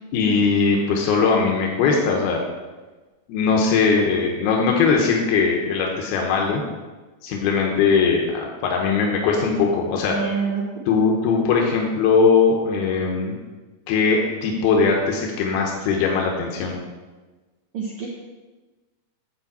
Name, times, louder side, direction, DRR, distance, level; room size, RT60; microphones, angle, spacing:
voice 1, 0.1-2.4 3.3-6.6 7.2-10.2 10.9-13.3 13.9-16.8, left 5 dB, 80° left, 0 dB, 2.8 m, -20 dB
voice 2, 10.1-10.6 17.7-18.1, right 6 dB, 75° right, -4 dB, 1.3 m, -26 dB
8.3 x 4.5 x 7.3 m, 1.2 s
omnidirectional pair, 4.3 m